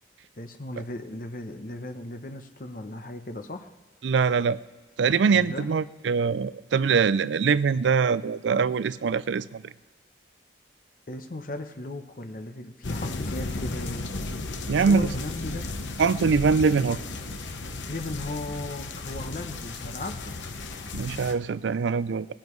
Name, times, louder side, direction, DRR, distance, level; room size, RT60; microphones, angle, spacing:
voice 1, 0.4-3.7 5.3-5.7 11.1-14.1 14.8-15.7 17.9-20.4, left 2 dB, 50° left, 7 dB, 0.8 m, -36 dB
voice 2, 4.0-4.6 5.0-9.6 14.7-15.1 16.0-17.0 20.9-22.3, right 5 dB, 80° right, 17 dB, 0.4 m, -23 dB
sound 1, 12.8-21.3, left 2 dB, 90° left, 1.0 m, -34 dB
19.5 x 10.5 x 3.2 m, 1.3 s
head